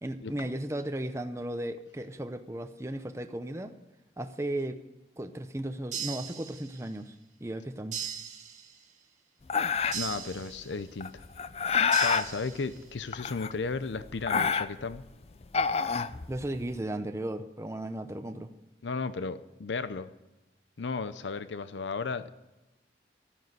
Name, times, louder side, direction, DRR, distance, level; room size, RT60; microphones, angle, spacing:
voice 1, 0.0-3.7 4.2-4.8 5.2-7.2 7.4-8.1 16.3-18.5, right 1 dB, 15° right, 8 dB, 0.7 m, -35 dB
sound 1, 5.9-7.0 7.9-9.0 9.9-11.0 11.9-13.0, right 8 dB, 40° right, 1.7 m, -39 dB
sound 2, 9.5-10.2 11.0-12.3 13.1-13.8 14.1-15.0 15.4-16.7, left 6 dB, 35° left, 0.5 m, -27 dB
voice 2, 9.9-11.2 12.0-15.0 18.8-20.1 20.8-22.3, left 4 dB, 80° left, 13 dB, 0.6 m, -34 dB
13.0 x 9.4 x 7.9 m, 0.98 s
head